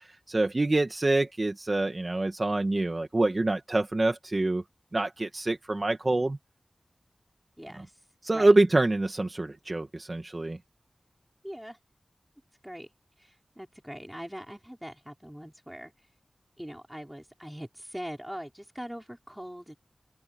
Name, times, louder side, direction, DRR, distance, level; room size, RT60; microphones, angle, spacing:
voice 1, 0.3-4.6 4.9-6.4 7.8-7.9 8.2-10.6, right 2 dB, 35° right, 1.6 m, -26 dB
voice 2, 7.6-7.9 8.3-8.5 11.4-11.8 12.6-12.9 13.6-15.9 16.6-19.8, equal, 5° right, 5.1 m, -41 dB
open air
wide cardioid pair, 90°, 0 cm